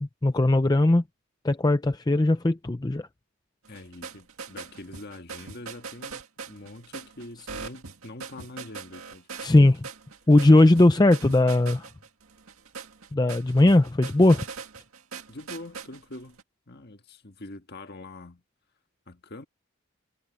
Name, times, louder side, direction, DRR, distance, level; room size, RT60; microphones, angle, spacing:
voice 1, 0.0-1.0 1.4-3.1 9.4-9.9 10.3-11.8 13.1-14.4, left 2 dB, 20° left, 0.5 m, -19 dB
voice 2, 3.7-9.5 15.3-16.4 16.7-18.4 19.1-19.5, left 2 dB, 45° left, 1.6 m, -44 dB
sound 1, 3.7-16.4, right 5 dB, 80° right, 1.9 m, -41 dB
head